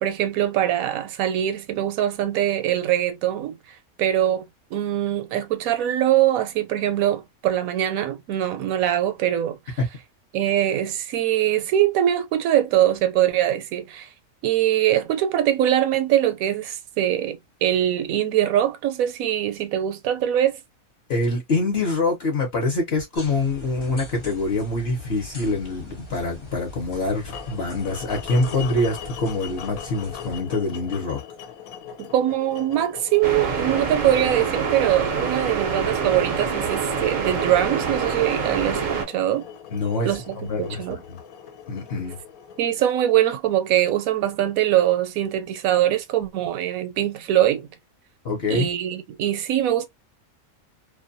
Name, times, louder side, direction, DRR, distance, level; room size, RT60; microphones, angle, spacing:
voice 1, 0.0-3.6 4.0-4.4 4.7-9.8 10.3-14.1 14.4-20.6 32.0-39.5 40.0-41.0 42.6-47.7 48.5-49.9, right 12 dB, 80° right, 1.0 m, -22 dB
voice 2, 21.1-31.2 39.7-41.2 41.7-42.2 48.2-48.7, left 2 dB, 55° left, 0.9 m, -25 dB
sound 1, 23.1-30.4, left 1 dB, 30° left, 0.6 m, -42 dB
sound 2, 27.3-43.4, left 8 dB, 85° left, 1.0 m, -41 dB
sound 3, 33.2-39.0, right 5 dB, 50° right, 0.5 m, -26 dB
2.5 x 2.2 x 2.6 m
omnidirectional pair, 1.5 m